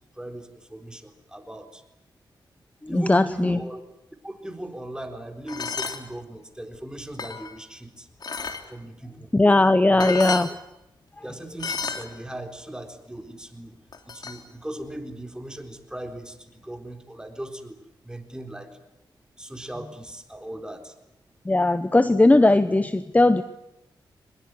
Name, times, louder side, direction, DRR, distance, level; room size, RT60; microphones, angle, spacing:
voice 1, 0.2-1.8 2.9-3.8 4.2-8.1 8.7-9.3 9.9-10.1 11.2-13.8 14.1-17.8 18.0-18.8 19.4-20.9, right 1 dB, 10° right, 5 dB, 4.0 m, -38 dB
voice 2, 2.9-3.6 9.3-10.5 21.5-23.4, left 2 dB, 20° left, 13 dB, 1.0 m, -18 dB
sound 1, 5.5-6.0 6.7-7.6 8.2-8.6 9.7-9.8 10.0-10.5 11.6-12.1 13.9-14.4, left 5 dB, 55° left, 3.2 m, -31 dB
23.5 x 21.5 x 9.6 m, 0.89 s
cardioid pair, 70°, 9 cm